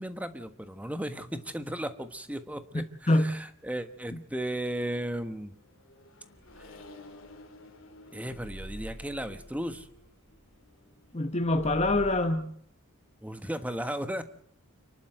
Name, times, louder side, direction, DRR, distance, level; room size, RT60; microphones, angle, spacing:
voice 1, 0.0-5.5 6.6-6.8 8.1-9.9 13.2-14.2, right 1 dB, 5° right, 1.3 m, -35 dB
voice 2, 2.7-3.4 4.1-4.2 11.1-12.5, left 1 dB, 30° left, 1.0 m, -26 dB
Accelerating revving vroom, 5.3-11.7, left 2 dB, 60° left, 2.8 m, -54 dB
sound 1, 6.4-7.8 8.2-11.1 11.4-12.3, right 1 dB, 65° right, 5.4 m, -46 dB
29.5 x 11.5 x 7.8 m
head